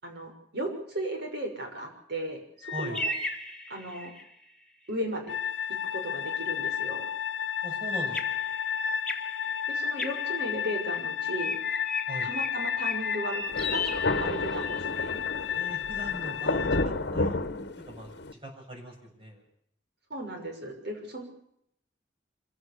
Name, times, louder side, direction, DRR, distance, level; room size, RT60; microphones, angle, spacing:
voice 1, 0.0-3.1 3.7-4.1 4.9-5.4 5.9-7.1 9.7-11.6 12.2-15.2 20.1-21.2, right 1 dB, 60° right, 3 dB, 6.1 m, -36 dB
sound 1, 2.6-4.3 7.8-11.0 11.4-14.8, left 3 dB, 5° left, 2.9 m, -35 dB
voice 2, 2.7-3.0 7.6-8.5 12.1-12.3 15.4-17.4 17.9-18.1 18.4-19.4, equal, 30° right, 1 dB, 6.9 m, -40 dB
sound 2, 5.3-16.8, left 9 dB, 85° left, 0.7 m, -32 dB
Thunder, 13.5-18.3, left 2 dB, 60° left, 1.2 m, -31 dB
25.5 x 16.0 x 6.8 m, 0.74 s
head